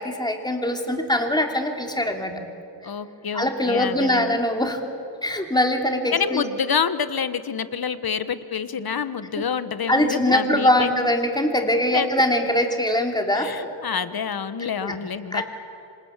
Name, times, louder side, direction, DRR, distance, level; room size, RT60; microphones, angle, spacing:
voice 1, 0.0-2.3 3.3-4.8 5.2-6.4 9.9-13.5 14.8-14.9 15.3-15.4, left 1 dB, 10° left, 3 dB, 3.2 m, -22 dB
voice 2, 2.8-4.3 6.1-11.1 11.9-12.1 13.3-15.4, left 6 dB, 55° left, 12 dB, 1.3 m, -27 dB
26.5 x 26.5 x 7.5 m, 2.7 s
cardioid pair, 75°, 45 cm